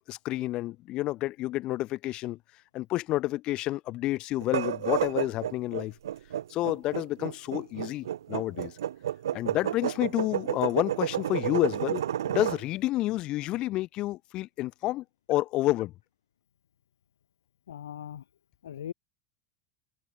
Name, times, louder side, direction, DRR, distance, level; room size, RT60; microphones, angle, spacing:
voice 1, 0.1-2.4 2.7-5.9 6.5-8.7 9.3-15.9, left 16 dB, 45° left, 5.5 m, -29 dB
sound 1, 4.4-12.6, right 11 dB, 70° right, 1.6 m, -31 dB
voice 2, 17.7-18.2 18.6-18.9, left 10 dB, 75° left, 1.6 m, -39 dB
figure-of-eight pair, 80°, 2 cm